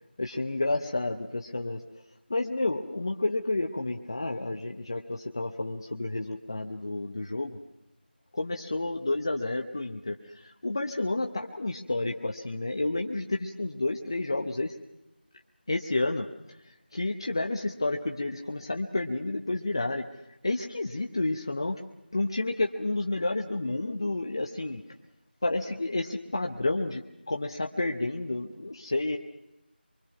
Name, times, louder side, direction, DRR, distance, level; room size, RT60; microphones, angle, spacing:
voice 1, 0.2-1.8 2.3-7.6 8.3-10.2 10.4-14.7 15.7-16.3 16.9-20.1 20.4-21.8 22.1-24.8 25.4-29.2, left 2 dB, 25° left, 3 dB, 0.8 m, -30 dB
24.0 x 24.0 x 5.9 m, 0.91 s
figure-of-eight pair, 175°, 6 cm